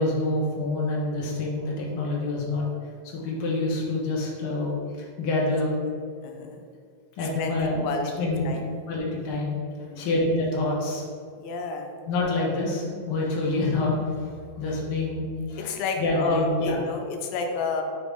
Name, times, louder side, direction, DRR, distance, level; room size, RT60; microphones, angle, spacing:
voice 1, 0.0-2.7 3.1-5.7 7.2-7.8 8.2-8.6 8.9-9.6 10.0-11.0 12.1-14.3 14.6-16.8, left 2 dB, 75° left, -4 dB, 1.2 m, -27 dB
voice 2, 6.2-6.6 7.4-8.1 8.5-8.7 9.8-10.1 11.4-11.9 15.6-17.8, left 4 dB, 90° left, 3 dB, 2.5 m, -30 dB
5.8 x 3.1 x 5.2 m, 2.2 s
omnidirectional pair, 4.1 m